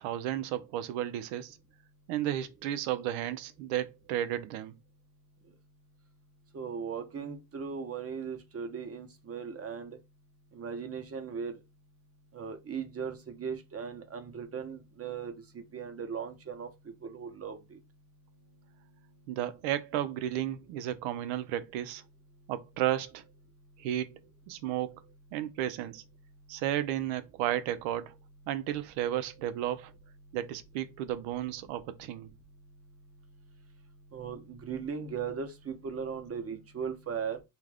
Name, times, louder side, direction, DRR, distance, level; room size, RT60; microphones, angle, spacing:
voice 1, 0.0-1.6 2.1-4.7 19.3-22.0 22.5-23.2 23.8-24.2 24.5-25.0 25.3-26.0 26.5-28.1 28.5-29.9 30.3-32.3, right 12 dB, 80° right, 0.6 m, -33 dB
voice 2, 6.5-10.0 10.5-11.6 12.3-16.7 17.0-17.8 34.1-37.4, right 6 dB, 30° right, 0.8 m, -38 dB
2.4 x 2.4 x 3.3 m
supercardioid pair, 75°, 45 cm